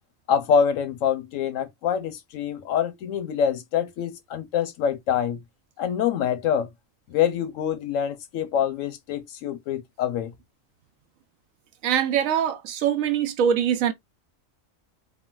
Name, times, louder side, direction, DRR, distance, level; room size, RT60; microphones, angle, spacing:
voice 1, 0.3-5.4 5.8-6.7 7.1-10.3, left 8 dB, 75° left, 1.0 m, -25 dB
voice 2, 11.8-13.9, right 8 dB, 80° right, 1.0 m, -23 dB
3.8 x 2.1 x 2.3 m
omnidirectional pair, 1.4 m